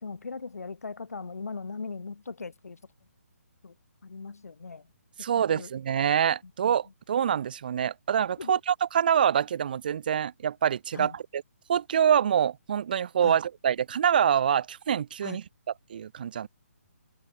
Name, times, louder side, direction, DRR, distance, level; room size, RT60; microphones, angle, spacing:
voice 1, 0.0-2.8 3.6-3.7 4.0-4.9 5.2-5.7 8.4-8.6 10.9-11.2 13.2-13.4 15.2-15.4, left 4 dB, 90° left, 3.6 m, -39 dB
voice 2, 5.2-11.4 11.7-15.4 15.9-16.5, right 8 dB, 35° right, 0.6 m, -25 dB
hypercardioid pair, 170°, 8 cm